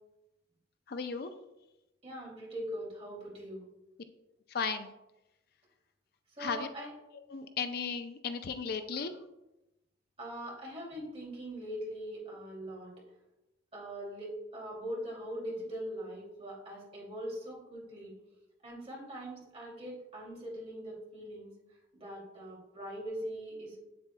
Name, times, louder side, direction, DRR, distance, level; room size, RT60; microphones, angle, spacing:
voice 1, 0.9-1.3 4.5-4.9 6.4-6.7 7.3-9.2, left 5 dB, 55° left, 8 dB, 0.4 m, -35 dB
voice 2, 2.0-3.6 6.3-6.9 10.2-12.9 13.7-18.1 18.6-21.5 21.9-23.8, equal, 30° right, -4 dB, 2.6 m, -41 dB
8.0 x 7.7 x 2.2 m, 0.94 s
head